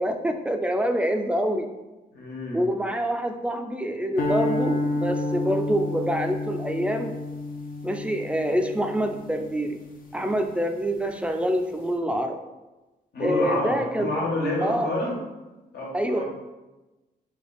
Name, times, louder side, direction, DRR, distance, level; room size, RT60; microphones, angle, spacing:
voice 1, 0.0-1.7 2.5-7.1 7.8-9.8 10.1-12.4 13.2-14.1 14.6-14.9 15.9-16.2, equal, 5° right, 5 dB, 0.3 m, -26 dB
voice 2, 2.1-2.6 13.1-15.2 15.7-16.2, left 1 dB, 85° left, -4 dB, 1.4 m, -28 dB
sound 1, 4.2-10.5, left 2 dB, 60° left, 0.5 m, -30 dB
3.4 x 3.3 x 4.0 m, 1.1 s
wide cardioid pair, 135°, 16 cm